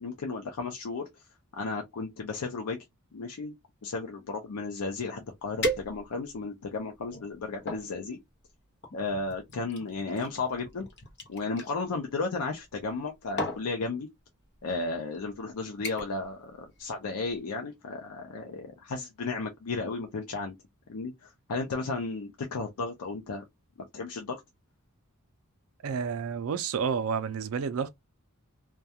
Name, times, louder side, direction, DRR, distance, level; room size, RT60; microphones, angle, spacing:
voice 1, 0.0-1.1 1.5-2.8 3.1-3.5 3.8-8.2 8.9-10.9 11.3-14.1 14.6-20.6 20.9-23.4 23.9-24.4, left 3 dB, 85° left, 0.5 m, -34 dB
sound 1, 5.6-6.4 7.0-7.9 8.8-11.7 12.8-13.0 13.4-13.7 14.6-14.7 15.1-15.4 15.8-16.3 16.6-16.9 17.3-17.4, equal, 50° left, 0.8 m, -36 dB
voice 2, 25.8-27.9, right 6 dB, 65° right, 0.4 m, -30 dB
2.3 x 2.2 x 2.7 m
head